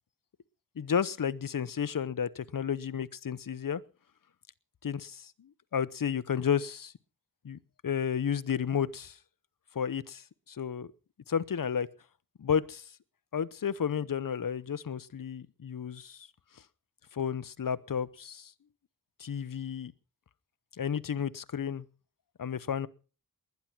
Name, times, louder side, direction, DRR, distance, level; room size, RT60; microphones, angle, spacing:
voice 1, 0.8-3.8 4.8-6.9 7.4-9.2 9.7-10.9 11.3-11.9 12.4-12.9 13.3-16.3 17.1-18.5 19.2-19.9 20.8-21.8 22.4-22.9, left 7 dB, 60° left, 0.9 m, -32 dB
20.5 x 10.5 x 6.0 m
wide cardioid pair, 90°, 37 cm